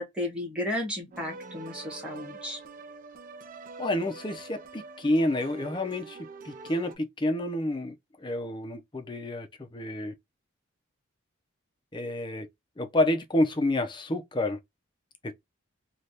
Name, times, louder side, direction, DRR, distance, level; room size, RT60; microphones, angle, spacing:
voice 1, 0.0-2.6, left 1 dB, 5° right, 1.3 m, -33 dB
sound 1, 1.1-7.0, right 3 dB, 40° right, 0.4 m, -45 dB
voice 2, 3.8-6.2 6.4-10.1 11.9-12.5 12.8-14.6, left 1 dB, 20° left, 0.5 m, -29 dB
3.3 x 2.4 x 2.7 m
head